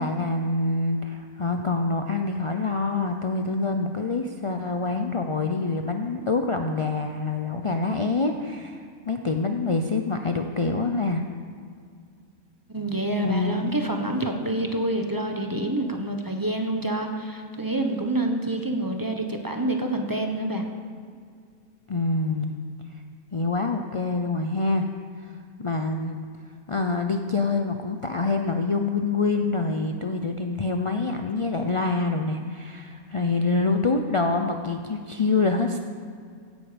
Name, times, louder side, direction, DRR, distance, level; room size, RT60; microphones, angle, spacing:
voice 1, 0.0-11.2 13.2-13.6 21.9-22.5 23.3-24.9 25.6-26.3 26.7-35.8, left 3 dB, 50° left, 4 dB, 0.4 m, -26 dB
voice 2, 12.7-20.7, right 1 dB, 15° right, 3 dB, 1.1 m, -27 dB
16.0 x 11.5 x 5.2 m, 2.2 s
omnidirectional pair, 1.6 m